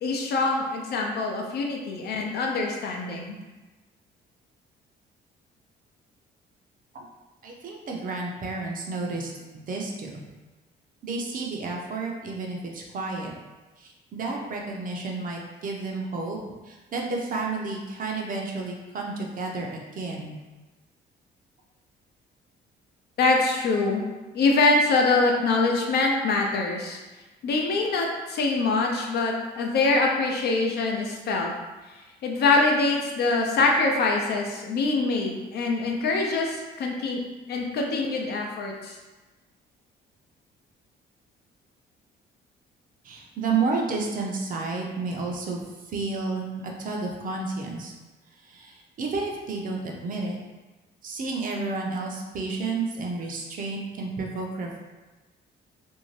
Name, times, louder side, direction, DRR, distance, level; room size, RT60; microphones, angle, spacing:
voice 1, 0.0-3.4 23.2-24.0 24.3-27.0 27.4-31.5 32.2-37.2 37.5-38.9, left 3 dB, 60° left, 1 dB, 0.5 m, -24 dB
voice 2, 7.4-10.2 11.0-13.3 13.8-16.4 16.6-20.4 43.0-47.9 48.4-50.4 51.0-54.8, right 3 dB, 50° right, 0 dB, 0.5 m, -31 dB
2.6 x 2.1 x 3.1 m, 1.2 s
cardioid pair, 115°, 19 cm